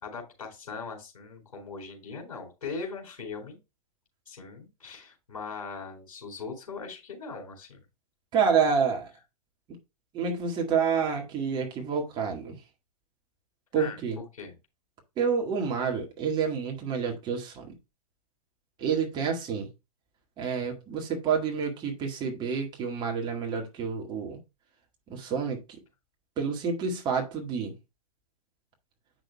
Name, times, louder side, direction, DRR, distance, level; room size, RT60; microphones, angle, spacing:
voice 1, 0.0-3.6 4.3-7.8 13.7-14.5, left 4 dB, 60° left, 4.0 m, -40 dB
voice 2, 8.3-9.1 10.1-12.6 13.7-14.2 15.2-17.7 18.8-19.7 20.4-24.4 25.1-25.6 26.4-27.7, right 6 dB, 25° right, 1.7 m, -28 dB
8.7 x 6.0 x 2.2 m
figure-of-eight pair, 105°, 20 cm